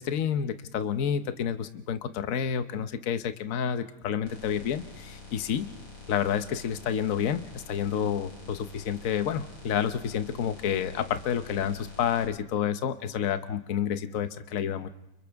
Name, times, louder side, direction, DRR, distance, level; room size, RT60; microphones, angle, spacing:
voice 1, 0.0-5.7 6.1-14.9, left 8 dB, 50° left, 9 dB, 1.0 m, -29 dB
sound 1, 4.3-12.3, left 3 dB, 85° left, 5.4 m, -47 dB
30.0 x 29.5 x 3.5 m, 0.93 s
omnidirectional pair, 2.4 m